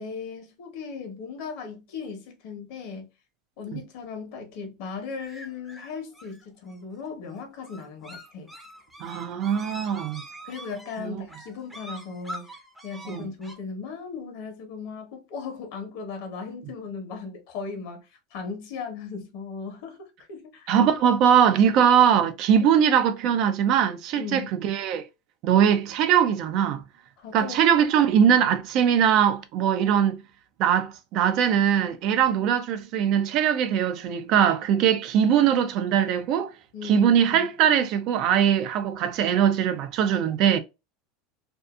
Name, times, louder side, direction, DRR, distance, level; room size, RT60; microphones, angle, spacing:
voice 1, 0.0-3.1 3.6-8.5 10.4-20.9 22.6-22.7 24.2-24.5 27.2-27.6 36.7-37.5, left 5 dB, 65° left, 1.0 m, -37 dB
sound 1, 5.2-13.5, right 1 dB, ahead, 0.6 m, -44 dB
voice 2, 9.0-10.2 11.0-11.2 13.1-13.3 20.7-25.0 25.4-26.8 27.3-30.2 30.6-36.5 36.8-40.6, right 8 dB, 50° right, 0.4 m, -21 dB
2.6 x 2.4 x 2.3 m
supercardioid pair, 135°, 0 cm